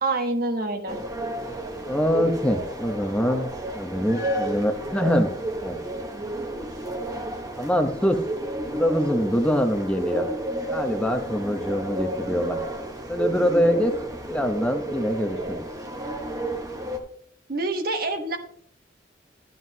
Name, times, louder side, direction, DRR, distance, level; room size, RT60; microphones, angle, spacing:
voice 1, 0.0-1.0 17.5-18.4, right 2 dB, 50° right, 5 dB, 1.1 m, -26 dB
sound 1, 0.9-17.0, right 1 dB, 20° right, 1.1 m, -32 dB
voice 2, 1.9-5.3 5.6-5.8 7.6-8.2 8.7-10.3 10.7-12.6 13.1-13.9 14.3-15.6, equal, 5° left, 4 dB, 0.8 m, -24 dB
11.5 x 9.1 x 2.8 m, 0.62 s
head